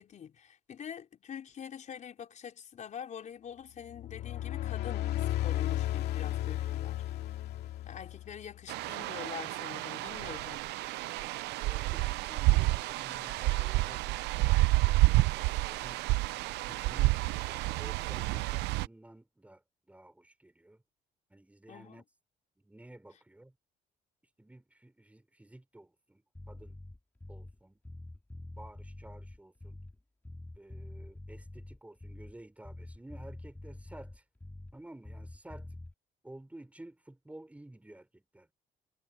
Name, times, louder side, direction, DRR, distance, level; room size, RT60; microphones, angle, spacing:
voice 1, 0.0-7.0 7.9-10.6 21.7-22.0, left 8 dB, 45° left, 4.4 m, -45 dB
sound 1, 3.9-8.6, left 13 dB, 75° left, 2.3 m, -34 dB
sound 2, 8.7-18.9, right 20 dB, 85° right, 0.7 m, -29 dB
voice 2, 11.6-14.9 15.2-16.0 16.6-17.2 17.5-20.8 21.3-22.0 22.6-23.5 24.4-26.8 27.3-27.8 28.6-29.8 30.6-34.2 34.7-35.7 36.2-38.5, right 1 dB, 10° right, 5.8 m, -53 dB
Bass guitar, 26.3-27.6 27.8-30.0 30.2-32.4 32.6-34.8 35.0-35.9, left 2 dB, 10° left, 3.6 m, -46 dB
cardioid pair, 110°, 17 cm